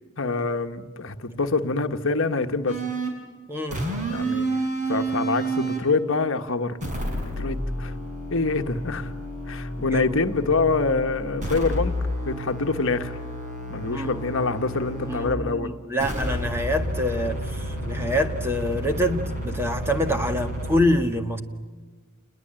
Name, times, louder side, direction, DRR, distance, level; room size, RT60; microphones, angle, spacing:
voice 1, 0.2-2.8 4.1-4.6 4.9-6.8 7.4-7.9 8.3-9.1 9.5-11.9 12.2-13.1 13.7-15.7, left 3 dB, 60° left, 7 dB, 1.4 m, -25 dB
sound 1, 2.7-3.2 3.7-5.9 6.8-15.4 16.0-20.8, right 1 dB, 35° right, 6.3 m, -30 dB
voice 2, 3.5-3.8 9.8-10.1 13.8-14.2 15.0-21.4, left 1 dB, 10° right, 6 dB, 1.8 m, -26 dB
29.5 x 21.5 x 9.0 m, 1.4 s
head